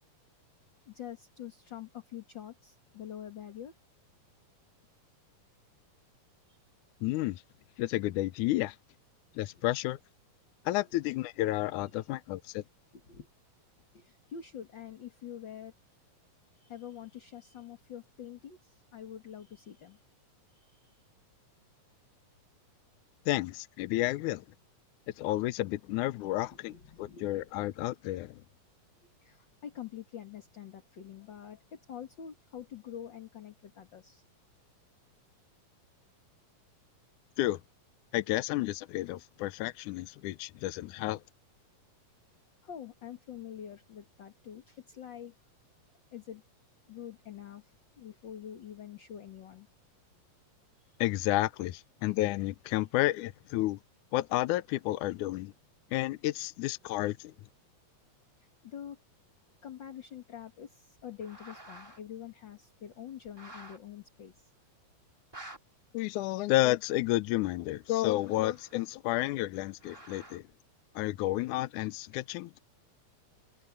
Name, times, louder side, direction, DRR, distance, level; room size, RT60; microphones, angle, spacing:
voice 1, 0.9-3.7 6.5-6.6 12.9-13.3 13.9-15.7 16.6-20.0 20.6-20.9 26.5-27.3 29.2-34.2 42.6-45.3 46.1-46.4 46.9-49.7 50.8-51.0 58.6-59.0 59.6-64.5, left 9 dB, 40° left, 1.9 m, -46 dB
voice 2, 7.0-7.4 7.8-8.8 9.4-10.0 10.7-12.6 23.3-24.4 25.2-26.7 27.0-28.4 37.4-37.6 38.1-41.2 51.0-53.8 54.1-55.5 55.9-57.3 65.9-70.4 71.0-72.5, left 16 dB, 80° left, 1.9 m, -31 dB
sound 1, 61.0-62.0 62.5-62.6 63.3-63.8 64.4-64.5 65.1-65.6 66.6-66.7 67.5-69.0 69.7-70.5, right 2 dB, 15° right, 1.1 m, -50 dB
omnidirectional pair, 3.9 m